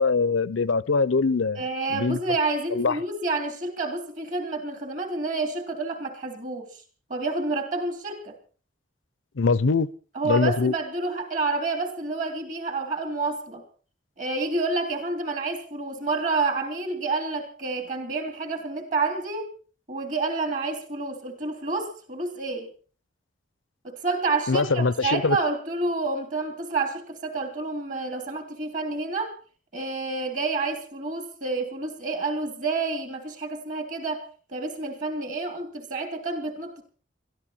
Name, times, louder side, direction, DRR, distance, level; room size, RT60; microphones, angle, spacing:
voice 1, 0.0-1.6 1.9-2.2 2.7-3.0 9.4-9.9 10.2-10.7 24.5-25.4, left 4 dB, 85° left, 0.7 m, -22 dB
voice 2, 1.5-6.8 7.1-8.3 10.1-13.6 14.2-19.5 19.9-22.7 23.8-29.3 29.7-36.8, right 3 dB, 40° right, 3.3 m, -29 dB
21.5 x 13.5 x 4.4 m
head